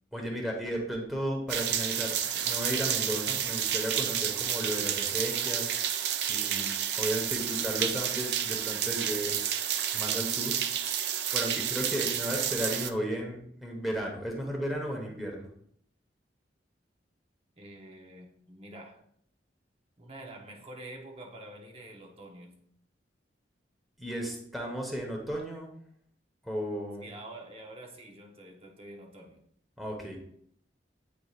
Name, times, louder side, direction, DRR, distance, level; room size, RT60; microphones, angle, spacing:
voice 1, 0.1-2.2 2.4-9.3 9.9-10.6 11.3-15.5 24.0-25.7 26.4-27.1 29.8-30.2, equal, ahead, -1 dB, 1.1 m, -34 dB
sound 1, 1.5-12.9, right 9 dB, 65° right, 0.4 m, -30 dB
voice 2, 11.4-11.7 17.6-19.0 20.0-22.6 27.0-29.4, right 1 dB, 35° right, 1 dB, 1.0 m, -47 dB
8.4 x 4.8 x 2.4 m, 0.67 s
head